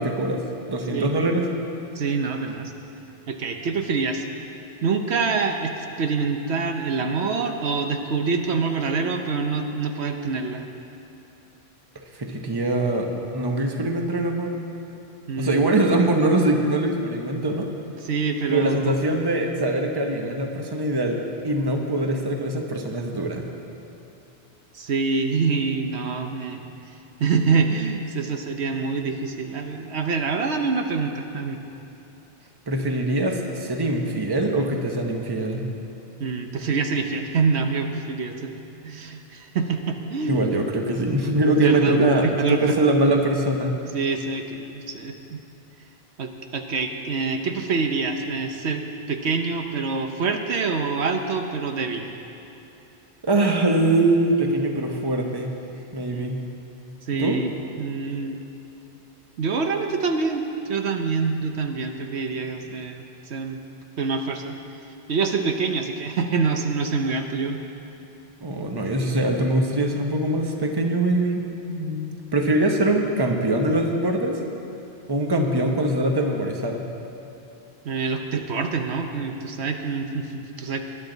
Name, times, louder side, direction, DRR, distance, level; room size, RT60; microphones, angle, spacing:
voice 1, 0.0-1.4 12.1-13.1 13.3-14.6 15.4-17.7 18.5-23.5 32.7-35.7 40.3-43.8 53.2-55.5 55.9-56.4 57.1-57.4 68.4-71.4 71.7-72.1 72.3-74.4 75.1-76.9, right 1 dB, 25° right, 2 dB, 1.0 m, -23 dB
voice 2, 1.9-2.7 3.3-4.2 4.8-10.6 15.3-15.7 18.0-18.9 24.7-26.6 27.2-31.6 36.2-38.6 38.8-40.7 41.6-42.8 43.9-45.4 46.2-52.1 56.1-56.3 57.1-58.4 59.4-63.6 64.0-64.6 65.1-67.6 77.8-80.8, right 4 dB, 75° right, 5 dB, 1.1 m, -26 dB
20.5 x 11.0 x 4.0 m, 2.9 s
omnidirectional pair, 1.1 m